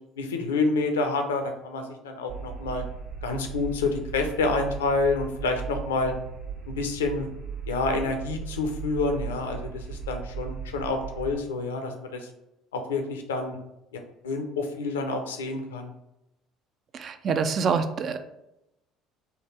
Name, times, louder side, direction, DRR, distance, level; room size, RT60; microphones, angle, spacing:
voice 1, 0.2-2.9 3.2-6.1 6.6-7.3 7.7-12.3 12.7-13.6 13.9-15.9, left 3 dB, 80° left, 5 dB, 0.4 m, -28 dB
sound 1, 2.3-11.3, right 6 dB, 65° right, 1.1 m, -37 dB
voice 2, 16.9-18.2, right 5 dB, 45° right, 9 dB, 0.3 m, -26 dB
3.4 x 2.2 x 3.1 m, 0.88 s
figure-of-eight pair, 60°, 0 cm